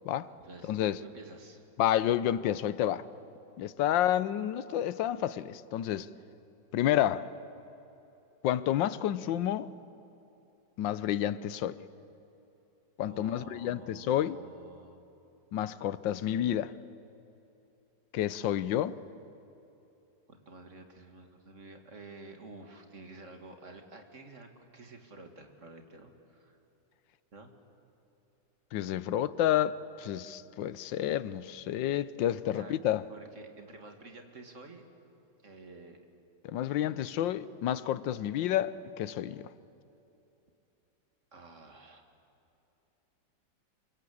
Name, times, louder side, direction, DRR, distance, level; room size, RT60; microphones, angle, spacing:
voice 1, 0.3-1.6 13.1-15.0 20.3-26.6 27.3-27.5 32.5-32.7 33.1-34.8 35.4-36.0 36.8-37.1 39.4-39.5 41.3-42.1, right 3 dB, 40° right, 2.5 m, -50 dB
voice 2, 1.8-3.1 3.6-6.1 6.7-7.3 8.4-9.7 10.8-11.8 13.0-14.4 15.5-16.7 18.1-19.0 28.7-33.0 36.4-39.5, left 11 dB, 85° left, 1.5 m, -30 dB
26.5 x 23.5 x 8.6 m
omnidirectional pair, 2.0 m